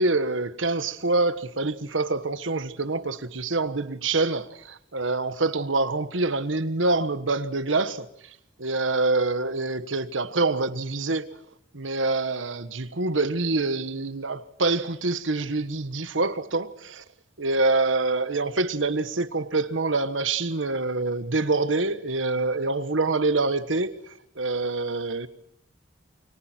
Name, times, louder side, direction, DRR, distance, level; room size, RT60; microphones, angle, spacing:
voice 1, 0.0-11.3 11.7-17.0 17.4-25.3, right 3 dB, 90° right, 1.4 m, -26 dB
29.0 x 23.0 x 4.5 m
head